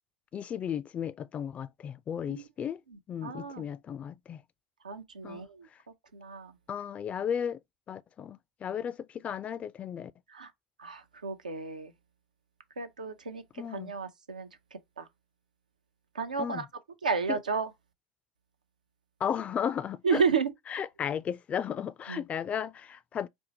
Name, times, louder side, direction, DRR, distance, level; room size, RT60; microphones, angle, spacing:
voice 1, 0.3-2.8 3.1-4.4 5.2-5.4 6.7-7.6 7.9-10.1 13.6-13.9 16.4-16.7 17.3-17.4 19.2-20.2 20.7-23.3, left 8 dB, 30° left, 0.3 m, -34 dB
voice 2, 3.2-3.7 4.8-5.7 6.1-6.5 10.3-10.5 10.8-11.9 12.8-13.4 13.7-14.5 15.0-15.1 16.1-16.7 17.0-17.7 20.0-20.5 22.1-22.2, right 5 dB, 85° right, 0.6 m, -31 dB
4.3 x 2.1 x 2.8 m
figure-of-eight pair, 75°, 4 cm